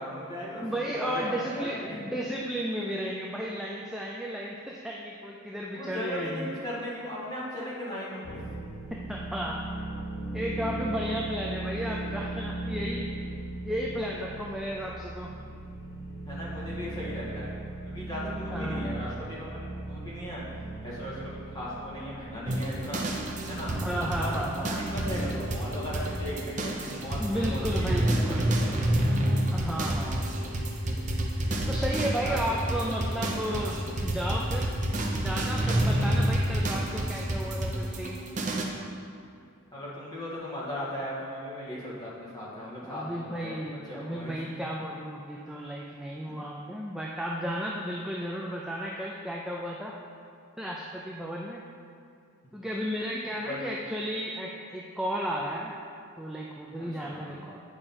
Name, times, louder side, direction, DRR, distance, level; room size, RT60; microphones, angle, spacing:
voice 1, 0.0-0.7 0.9-2.0 5.7-8.6 16.3-23.0 23.5-23.7 24.1-24.4 24.7-29.0 32.2-32.4 32.9-33.0 39.7-44.6 53.0-53.6 57.0-57.4, left 1 dB, 20° left, -8 dB, 1.8 m, -37 dB
voice 2, 0.6-6.5 8.9-9.9 10.3-13.1 13.6-15.3 18.5-18.8 23.7-24.7 27.2-28.8 29.5-30.3 31.7-34.7 35.1-38.2 42.8-50.0 50.6-51.6 52.5-55.8 56.2-57.6, equal, ahead, -3 dB, 0.4 m, -33 dB
sound 1, 8.2-28.0, right 2 dB, 80° left, 1.1 m, -38 dB
sound 2, 22.5-38.6, right 1 dB, 35° right, 0.7 m, -29 dB
8.8 x 5.0 x 4.3 m, 2.4 s
head